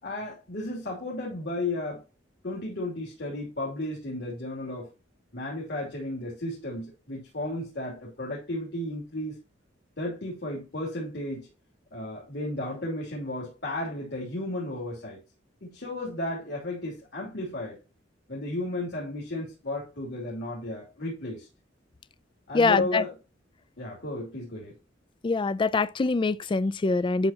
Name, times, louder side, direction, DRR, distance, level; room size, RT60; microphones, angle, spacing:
voice 1, 0.0-2.0 2.4-4.9 5.3-9.4 10.0-11.5 11.9-15.2 15.6-17.8 18.3-21.5 22.5-23.1 23.8-24.7, left 1 dB, 60° left, 2.9 m, -34 dB
voice 2, 22.5-23.0 25.2-27.3, left 3 dB, 25° left, 0.3 m, -24 dB
10.5 x 6.2 x 2.9 m
head